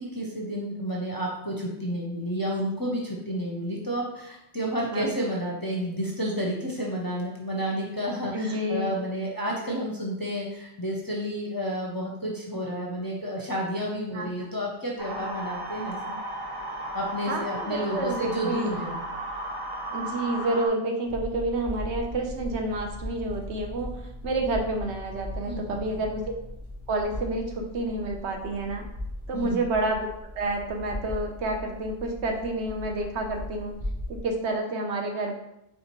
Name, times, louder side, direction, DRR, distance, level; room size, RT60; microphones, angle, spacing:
voice 1, 0.0-16.2 16.9-19.0 25.5-25.8 29.3-29.7, equal, 25° left, -3 dB, 0.5 m, -31 dB
voice 2, 8.3-8.9 14.1-14.5 17.3-18.7 19.9-26.2 26.9-28.8 29.3-33.7 34.1-35.3, right 2 dB, 80° right, 2 dB, 0.9 m, -29 dB
sound 1, 15.0-20.7, right 1 dB, 25° right, 0.6 m, -34 dB
sound 2, 21.0-34.3, left 1 dB, 50° right, 1.4 m, -38 dB
4.3 x 3.7 x 2.9 m, 0.86 s
omnidirectional pair, 1.2 m